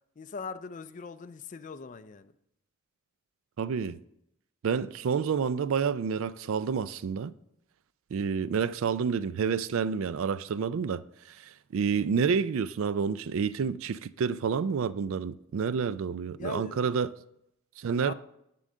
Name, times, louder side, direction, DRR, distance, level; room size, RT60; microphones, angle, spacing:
voice 1, 0.2-2.3 16.4-17.0 17.9-18.1, left 4 dB, 35° left, 0.4 m, -41 dB
voice 2, 3.6-4.0 4.6-7.3 8.1-17.1 17.8-18.1, right 6 dB, 65° right, 0.4 m, -29 dB
11.0 x 3.8 x 7.4 m
head